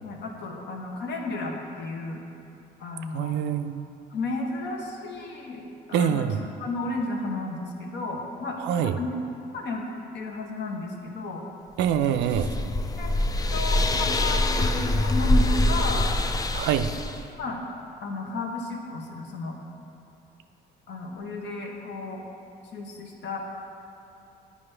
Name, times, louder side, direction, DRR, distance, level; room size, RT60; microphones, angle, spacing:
voice 1, 0.0-2.3 2.8-3.4 4.1-6.2 6.6-8.6 8.8-9.1 9.5-9.8 10.1-11.4 13.0-13.2 13.5-16.1 17.4-17.7 18.0-19.6 20.9-22.2 22.7-23.4, left 3 dB, 70° left, 1 dB, 1.0 m, -33 dB
voice 2, 3.1-3.8 5.9-6.4 8.6-9.0 11.8-12.5 16.5-16.9, right 9 dB, 75° right, 10 dB, 0.4 m, -25 dB
sound 1, 11.9-17.3, left 1 dB, 20° left, 0.4 m, -24 dB
9.7 x 5.1 x 3.3 m, 2.8 s
supercardioid pair, 80°, 19 cm